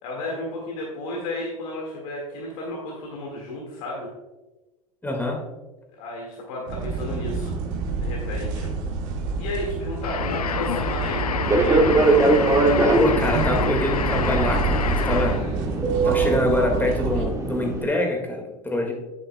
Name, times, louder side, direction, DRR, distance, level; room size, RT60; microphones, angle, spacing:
voice 1, 0.0-4.1 5.9-7.5 8.0-8.7 9.4-12.0, left 2 dB, 60° left, -2 dB, 1.9 m, -33 dB
voice 2, 5.0-5.4 12.9-15.4 16.0-18.9, left 1 dB, 10° left, 2 dB, 1.9 m, -25 dB
sound 1, 6.7-17.3, right 4 dB, 60° right, 1.5 m, -28 dB
sound 2, 10.0-15.5, left 7 dB, 85° left, 0.5 m, -28 dB
Fixed-wing aircraft airplane, 11.4-17.8, right 2 dB, 15° right, 1.4 m, -22 dB
9.9 x 9.2 x 2.3 m, 1.1 s
figure-of-eight pair, 80°, 19 cm